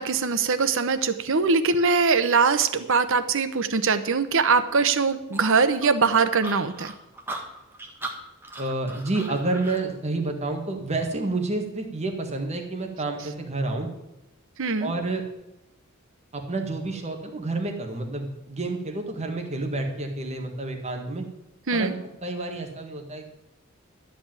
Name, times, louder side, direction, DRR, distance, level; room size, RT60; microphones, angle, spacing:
voice 1, 0.0-6.9 14.6-14.9 21.7-21.9, right 4 dB, 65° right, 11 dB, 0.9 m, -22 dB
sound 1, 5.3-9.8, right 2 dB, 10° right, 1.6 m, -38 dB
voice 2, 8.6-13.9 14.8-15.2 16.3-21.3 21.7-22.0 22.2-23.3, right 2 dB, 30° right, 3 dB, 1.7 m, -29 dB
12.0 x 5.2 x 9.0 m, 0.91 s
head